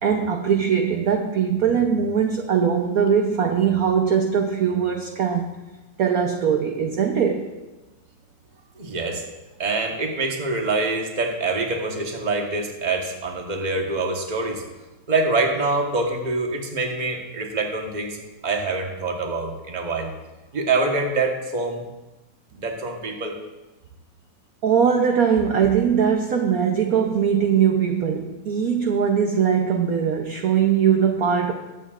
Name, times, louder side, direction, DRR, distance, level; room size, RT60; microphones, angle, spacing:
voice 1, 0.0-5.6 6.0-7.5 24.6-31.5, right 7 dB, 60° right, 3 dB, 1.0 m, -21 dB
voice 2, 8.8-9.2 9.6-14.6 15.1-18.2 18.4-20.1 20.5-21.8 22.6-23.4, right 3 dB, 25° right, 2 dB, 1.1 m, -25 dB
20.5 x 8.4 x 2.5 m, 1.1 s
omnidirectional pair, 2.2 m